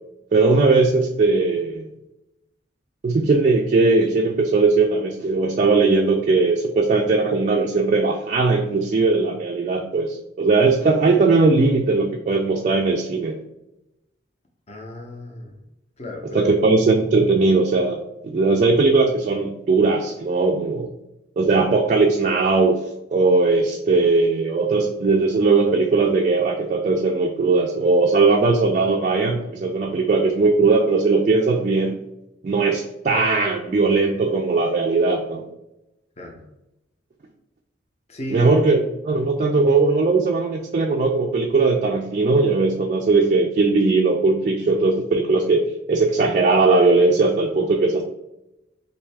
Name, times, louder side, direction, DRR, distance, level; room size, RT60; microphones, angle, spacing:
voice 1, 0.3-1.9 3.0-13.3 16.3-20.9 21.4-32.0 32.4-35.4 38.3-48.0, right 3 dB, 40° right, 1 dB, 0.3 m, -19 dB
voice 2, 14.7-15.6 16.0-16.5 36.2-36.4 38.1-38.5, left 1 dB, 35° left, 0 dB, 0.5 m, -33 dB
3.4 x 2.6 x 3.3 m, 0.90 s
head